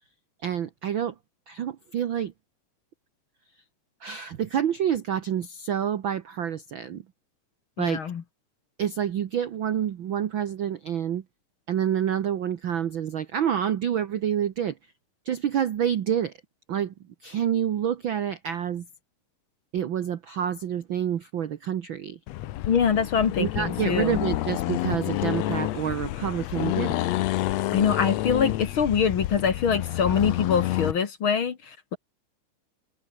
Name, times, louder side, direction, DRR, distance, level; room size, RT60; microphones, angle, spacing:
voice 1, 0.4-1.1 1.5-2.3 4.0-7.0 7.8-8.0 8.8-11.2 11.7-14.8 15.2-16.3 16.7-16.9 17.2-18.9 19.7-22.2 23.4-27.0, right 9 dB, 80° right, 1.1 m, -28 dB
voice 2, 7.8-8.2 22.7-24.2 27.7-32.0, left 7 dB, 50° left, 1.9 m, -24 dB
Accelerating revving vroom, 22.3-31.0, left 15 dB, 75° left, 1.7 m, -29 dB
omnidirectional pair, 3.8 m